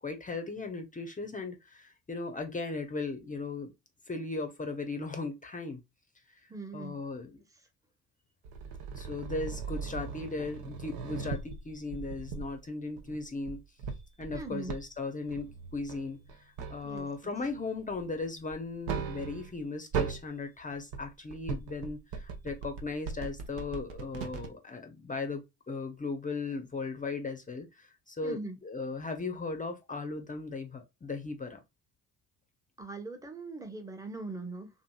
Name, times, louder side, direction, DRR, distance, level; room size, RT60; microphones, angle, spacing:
voice 1, 0.0-3.7 4.1-5.8 6.7-7.4 8.9-13.6 14.2-31.6, left 3 dB, 20° left, 0.6 m, -37 dB
voice 2, 6.5-7.0 14.3-14.7 16.8-17.1 28.2-28.6 32.8-34.7, right 3 dB, 10° right, 0.9 m, -40 dB
sound 1, 8.4-12.6 13.0-14.8 15.3-17.1 17.4-19.6 19.9-20.3 20.7-24.5, right 6 dB, 65° right, 0.8 m, -39 dB
2.8 x 2.6 x 2.2 m
hypercardioid pair, 60°, 38 cm